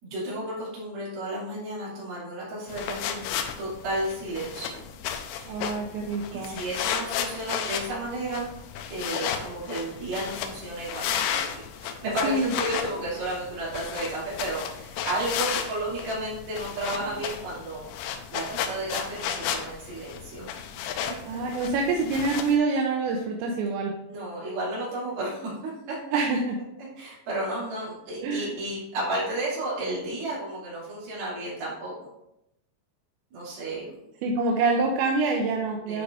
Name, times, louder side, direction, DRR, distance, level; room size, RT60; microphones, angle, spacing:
voice 1, 0.0-4.8 5.3-5.6 6.3-8.5 8.9-11.2 11.8-17.9 18.3-20.5 24.1-26.0 27.0-32.1 33.3-33.9 35.9-36.0, right 1 dB, 60° right, -7 dB, 4.3 m, -32 dB
sound 1, 2.7-22.6, left 8 dB, 85° left, 3.0 m, -34 dB
voice 2, 5.5-6.6 12.2-12.5 21.3-24.0 26.1-26.4 28.2-28.5 34.2-36.0, right 3 dB, 85° right, 0 dB, 2.9 m, -26 dB
10.5 x 4.7 x 2.6 m, 0.84 s
omnidirectional pair, 5.2 m